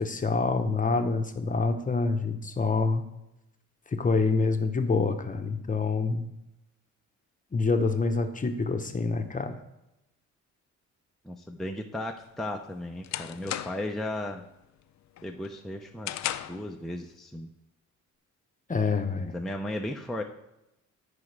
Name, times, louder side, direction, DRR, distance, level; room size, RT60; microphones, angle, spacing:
voice 1, 0.0-3.0 3.9-6.2 7.5-9.6 18.7-19.4, left 4 dB, 25° left, 7 dB, 0.9 m, -26 dB
voice 2, 11.2-14.4 15.2-17.5 19.3-20.2, left 1 dB, ahead, 2 dB, 0.6 m, -35 dB
sound 1, 12.2-14.0 14.4-14.8 15.2-16.7, left 12 dB, 65° left, 0.5 m, -36 dB
13.5 x 5.0 x 3.3 m, 0.89 s
cardioid pair, 90°, 30 cm